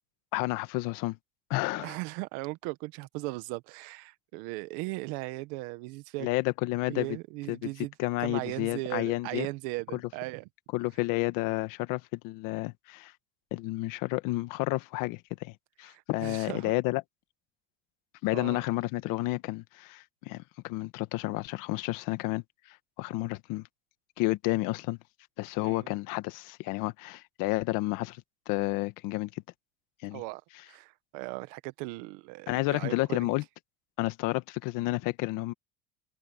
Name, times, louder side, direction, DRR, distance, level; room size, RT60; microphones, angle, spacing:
voice 1, 0.3-1.2 1.5-2.0 6.2-7.2 7.5-7.7 8.0-9.5 9.9-10.0 10.7-13.1 13.5-17.0 18.2-23.7 24.2-25.0 25.4-29.4 30.0-30.2 32.5-33.4 34.0-35.5, left 20 dB, 70° left, 1.5 m, -31 dB
voice 2, 1.7-6.3 6.9-7.9 8.2-10.5 15.9-16.7 18.3-18.6 25.6-26.0 30.1-30.4 30.7-33.3, right 22 dB, 85° right, 1.5 m, -38 dB
cardioid pair, 140°, 34 cm